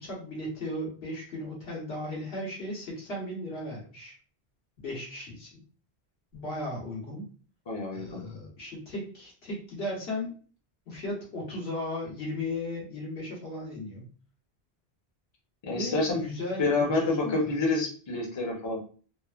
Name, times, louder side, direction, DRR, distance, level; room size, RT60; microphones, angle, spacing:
voice 1, 0.0-4.1 4.8-5.6 6.3-7.3 7.9-10.3 10.9-14.1 15.7-17.6, left 1 dB, 75° left, -3 dB, 1.3 m, -36 dB
voice 2, 7.7-8.2 15.6-16.2 16.6-18.8, left 3 dB, 30° left, -1 dB, 0.6 m, -28 dB
3.0 x 2.0 x 2.4 m, 0.41 s
omnidirectional pair, 1.1 m